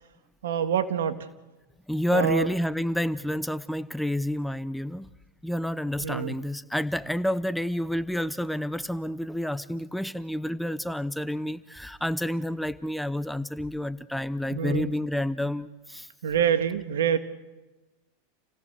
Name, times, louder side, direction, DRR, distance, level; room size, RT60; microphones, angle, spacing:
voice 1, 0.4-1.2 2.1-2.5 6.0-6.3 14.5-14.9 16.2-17.2, right 8 dB, 80° right, 9 dB, 1.7 m, -26 dB
voice 2, 1.9-5.1 5.4-16.1, left 1 dB, ahead, 14 dB, 0.8 m, -29 dB
28.5 x 17.0 x 6.9 m, 1.1 s
hypercardioid pair, 105°, 0 cm